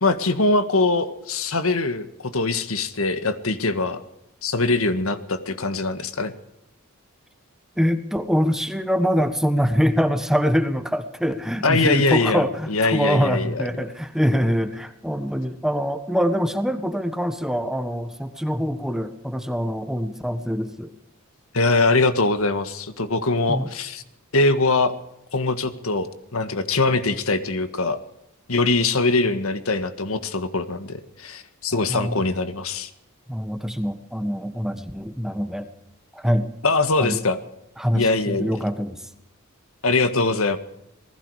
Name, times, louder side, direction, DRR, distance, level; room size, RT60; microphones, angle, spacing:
voice 1, 0.0-4.0 4.4-6.3 11.6-13.7 21.5-24.0 24.3-25.0 25.3-28.0 28.5-32.9 36.6-37.4 37.9-38.5 39.8-40.6, left 3 dB, 75° left, 10 dB, 1.8 m, -22 dB
voice 2, 7.8-20.9 23.5-23.7 31.9-32.2 33.3-35.7 36.1-36.5 37.0-37.2 37.8-39.0, equal, ahead, 8 dB, 1.4 m, -24 dB
27.0 x 20.0 x 4.9 m, 0.81 s
head